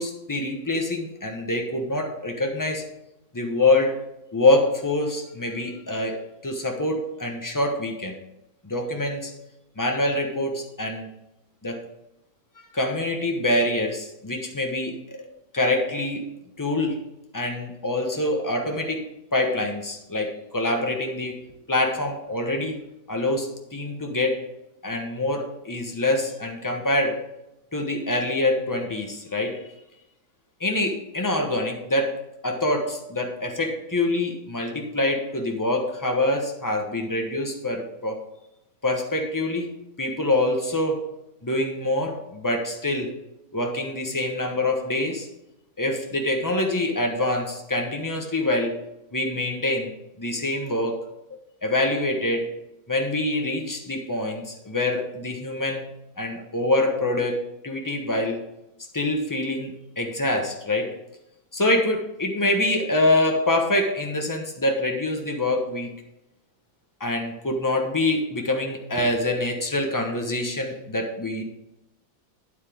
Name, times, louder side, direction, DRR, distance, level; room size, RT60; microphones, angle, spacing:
voice 1, 0.0-2.8 3.3-4.0 4.3-8.2 8.6-9.3 9.8-11.1 11.6-11.9 12.7-15.3 15.5-16.2 16.6-17.0 17.3-21.3 21.7-22.8 23.1-24.4 24.8-27.2 27.7-29.6 30.6-32.1 32.4-38.2 38.8-39.7 40.0-41.1 41.4-43.1 43.5-45.3 45.8-48.8 49.1-49.9 50.2-51.1 51.6-52.5 52.9-55.9 56.2-58.4 58.9-60.9 61.5-65.9 67.0-71.4, left 2 dB, 20° left, 2 dB, 0.6 m, -25 dB
9.3 x 8.1 x 3.5 m, 0.90 s
omnidirectional pair, 2.2 m